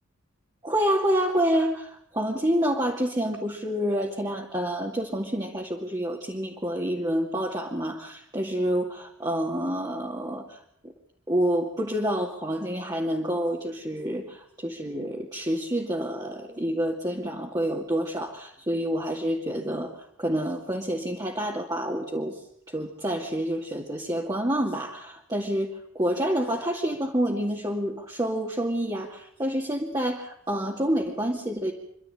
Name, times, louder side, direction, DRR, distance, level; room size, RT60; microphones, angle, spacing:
voice 1, 0.6-10.6 10.8-10.9 11.3-22.4 22.7-31.7, equal, 20° right, -1 dB, 2.4 m, -28 dB
28.0 x 12.5 x 9.1 m, 0.71 s
head